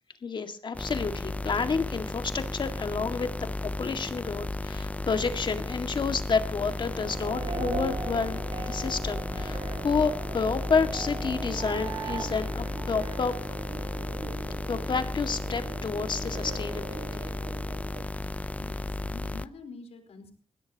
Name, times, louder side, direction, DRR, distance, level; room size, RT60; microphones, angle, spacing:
voice 1, 0.2-13.6 14.7-16.9 17.1-17.2, left 5 dB, 50° left, 7 dB, 2.0 m, -30 dB
sound 1, 0.7-19.5, left 2 dB, 15° left, 0.6 m, -34 dB
sound 2, 6.7-18.0, right 4 dB, 50° right, 2.0 m, -39 dB
voice 2, 18.3-20.3, left 4 dB, 85° left, 4 dB, 4.3 m, -47 dB
20.5 x 16.5 x 2.9 m, 0.43 s
cardioid pair, 100°, 10 cm